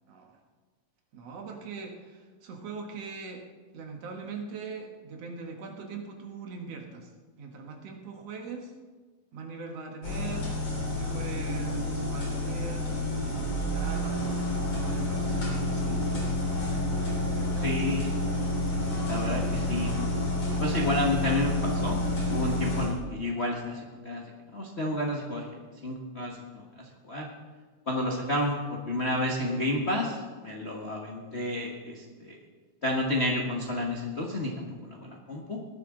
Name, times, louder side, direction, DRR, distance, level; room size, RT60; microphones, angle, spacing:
voice 1, 0.1-0.4 1.1-3.4 3.7-7.1 7.4-8.7 9.3-10.6 10.9-16.5 17.3-17.7, right 4 dB, 60° right, 2 dB, 2.3 m, -41 dB
sound 1, 10.0-22.9, left 1 dB, 50° left, 4.2 m, -29 dB
voice 2, 17.6-18.1 19.1-20.0 20.6-22.0 22.3-24.2 24.5-25.5 25.8-27.2 27.9-30.2 30.4-32.4 32.8-35.6, left 1 dB, 85° left, -1 dB, 0.5 m, -30 dB
19.5 x 11.5 x 3.8 m, 1.4 s
omnidirectional pair, 3.6 m